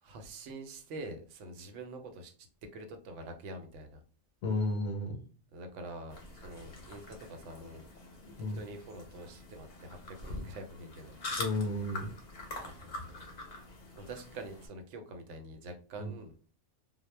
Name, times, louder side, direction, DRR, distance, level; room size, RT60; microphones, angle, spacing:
voice 1, 0.0-2.5 2.7-4.0 5.5-7.9 8.5-11.2 11.7-11.9 12.6-12.9 13.9-16.5, right 2 dB, 90° right, 5 dB, 0.9 m, -46 dB
voice 2, 4.4-5.3 8.4-8.6 11.4-12.1 16.0-16.1, left 2 dB, 90° left, 2 dB, 0.9 m, -33 dB
sound 1, 6.1-14.7, left 2 dB, 45° left, 0.6 m, -44 dB
2.1 x 2.0 x 3.1 m, 0.39 s
omnidirectional pair, 1.2 m